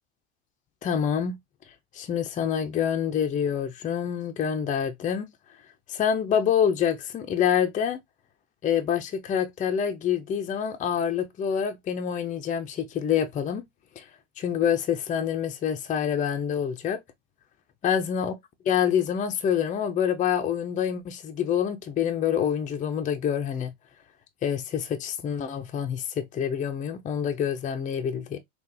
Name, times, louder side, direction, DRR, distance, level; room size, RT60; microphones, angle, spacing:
voice 1, 0.8-1.4 1.9-5.3 5.9-8.0 8.6-13.6 14.0-14.1 14.4-17.0 17.8-18.3 18.7-23.7 24.4-28.4, left 8 dB, 25° left, 0.6 m, -26 dB
3.8 x 2.4 x 2.6 m
supercardioid pair, 105°, 32 cm